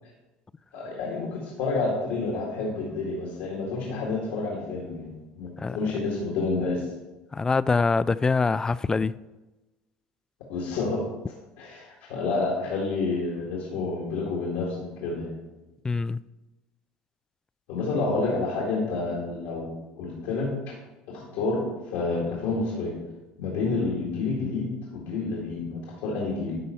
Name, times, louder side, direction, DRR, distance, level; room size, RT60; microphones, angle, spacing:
voice 1, 0.7-6.9 10.5-11.0 11.6-15.3 17.7-20.5 21.1-21.6 21.9-23.0 23.4-26.6, left 3 dB, 80° left, 2.0 m, -29 dB
voice 2, 7.3-9.1 15.8-16.2, left 4 dB, 20° left, 0.3 m, -24 dB
11.5 x 4.1 x 5.6 m
supercardioid pair, 85°, 3 cm